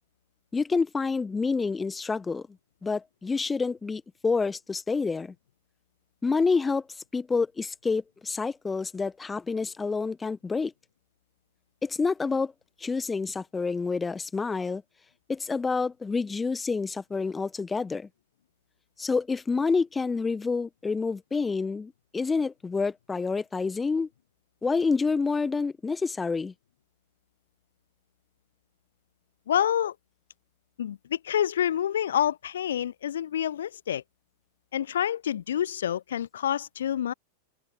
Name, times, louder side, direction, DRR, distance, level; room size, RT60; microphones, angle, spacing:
voice 1, 0.5-2.4 2.8-5.3 6.2-6.8 7.1-10.7 11.8-12.5 12.8-14.8 15.3-18.1 19.0-24.1 24.6-26.5, left 4 dB, 15° left, 1.6 m, -28 dB
voice 2, 29.5-30.0 30.8-34.0 34.7-37.1, left 10 dB, 65° left, 0.5 m, -27 dB
open air
figure-of-eight pair, 90°, 0 cm